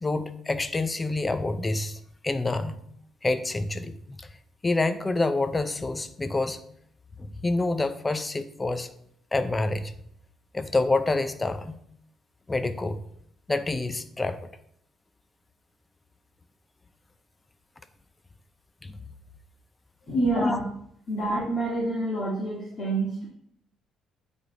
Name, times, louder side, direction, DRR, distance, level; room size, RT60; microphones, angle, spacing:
voice 1, 0.0-2.8 3.2-4.3 4.6-6.6 7.2-8.9 9.3-9.9 10.5-11.8 12.5-13.0 13.5-14.4 18.8-18.9 20.4-20.6, left 2 dB, 20° left, 12 dB, 0.6 m, -27 dB
voice 2, 20.1-20.6 21.1-23.3, right 2 dB, 45° left, -6 dB, 2.1 m, -27 dB
8.4 x 3.5 x 5.0 m, 0.68 s
supercardioid pair, 80°, 0 cm